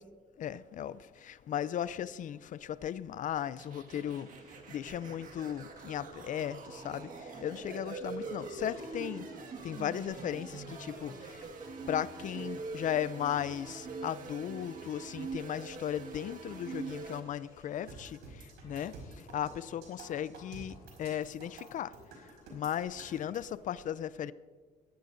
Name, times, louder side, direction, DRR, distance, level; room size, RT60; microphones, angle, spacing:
voice 1, 0.4-11.5 11.9-24.3, left 10 dB, 50° left, 0.5 m, -37 dB
sound 1, 3.6-17.2, right 4 dB, 50° right, 1.7 m, -44 dB
Train, 3.9-18.1, right 1 dB, 25° right, 2.8 m, -61 dB
sound 2, 17.9-23.5, right 3 dB, 90° right, 5.0 m, -50 dB
22.0 x 13.5 x 2.6 m
cardioid pair, 110°, 17 cm